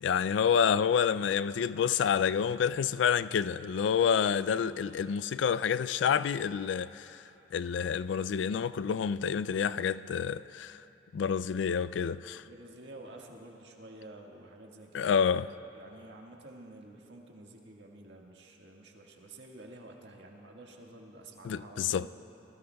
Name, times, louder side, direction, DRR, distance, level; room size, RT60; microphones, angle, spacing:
voice 1, 0.0-7.2 7.5-10.8 11.1-12.4 14.9-15.5 21.5-22.1, left 7 dB, 85° left, 0.3 m, -28 dB
voice 2, 12.4-15.4 15.7-22.1, right 1 dB, 75° right, 1.7 m, -50 dB
25.5 x 20.0 x 2.3 m
head